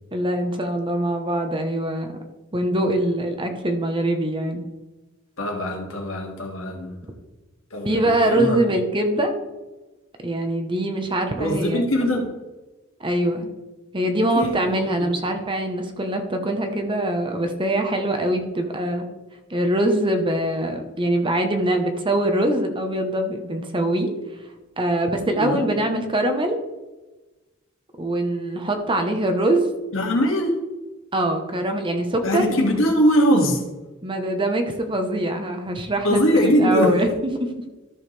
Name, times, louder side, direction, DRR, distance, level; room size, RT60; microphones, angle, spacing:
voice 1, 0.1-2.1 2.5-4.6 7.8-9.3 10.2-11.8 13.0-13.5 13.9-19.1 19.5-24.1 24.8-26.6 28.0-29.7 31.1-32.5 34.0-37.6, right 1 dB, 25° right, 5 dB, 1.0 m, -23 dB
voice 2, 5.4-6.9 7.7-8.6 11.4-12.3 14.3-15.1 25.4-25.6 29.9-30.6 32.2-33.6 36.0-37.0, equal, 80° left, 1 dB, 2.0 m, -21 dB
13.0 x 6.5 x 3.3 m, 1.1 s
head